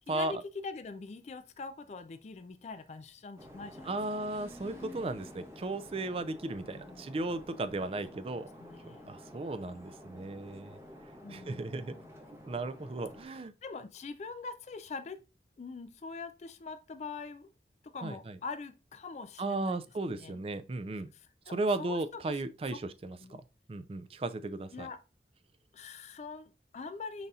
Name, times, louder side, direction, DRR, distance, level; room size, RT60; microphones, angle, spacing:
voice 1, 0.1-4.0 4.8-5.2 6.7-7.1 8.1-8.3 8.6-9.1 11.2-12.1 13.3-15.2 15.6-17.5 17.8-19.8 20.1-20.4 21.1-22.4 22.7-22.8 23.2-23.4 24.7-25.0 25.7-27.3, left 4 dB, 40° left, 0.3 m, -44 dB
sound 1, 3.4-13.2, left 1 dB, 15° right, 0.7 m, -50 dB
voice 2, 3.9-8.5 9.1-10.7 11.3-12.0 12.5-13.5 18.0-18.1 19.4-21.1 21.5-23.2 23.7-24.9, right 2 dB, 35° right, 0.4 m, -35 dB
5.4 x 4.0 x 2.4 m
head